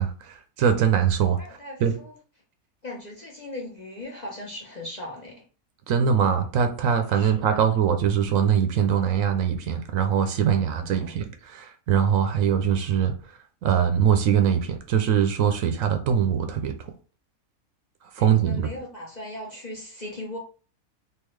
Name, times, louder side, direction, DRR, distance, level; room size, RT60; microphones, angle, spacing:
voice 1, 0.0-1.4 1.8-1.9 5.9-13.1 13.6-16.7 18.2-18.7, right 8 dB, 70° right, 7 dB, 0.9 m, -22 dB
voice 2, 1.4-2.1 2.8-5.4 7.1-7.4 10.4-11.2 18.2-20.4, left 1 dB, 40° left, -2 dB, 0.7 m, -39 dB
3.7 x 2.8 x 3.1 m, 0.38 s
omnidirectional pair, 1.5 m